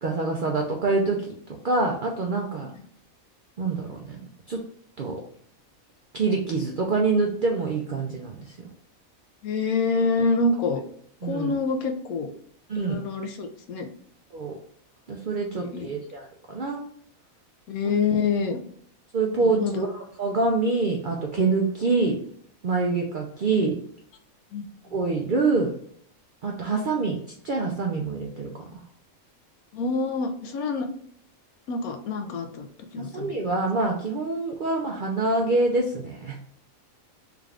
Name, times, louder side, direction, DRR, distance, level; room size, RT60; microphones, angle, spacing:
voice 1, 0.0-1.3 1.6-2.7 3.6-4.2 4.5-4.6 5.0-5.2 6.1-8.7 11.2-11.5 12.7-13.0 14.3-14.5 15.1-16.8 19.1-19.9 20.2-22.1 22.6-23.8 24.9-25.7 26.4-27.2 27.4-28.5 33.0-36.4, right 3 dB, 70° right, 0 dB, 0.4 m, -25 dB
voice 2, 9.4-10.8 11.2-12.3 12.8-13.9 15.5-15.9 17.7-18.6 19.4-19.8 24.5-24.7 29.7-30.9 31.7-32.7 32.9-33.4, left 4 dB, 85° left, 6 dB, 1.1 m, -26 dB
3.7 x 2.4 x 3.2 m, 0.62 s
omnidirectional pair, 1.5 m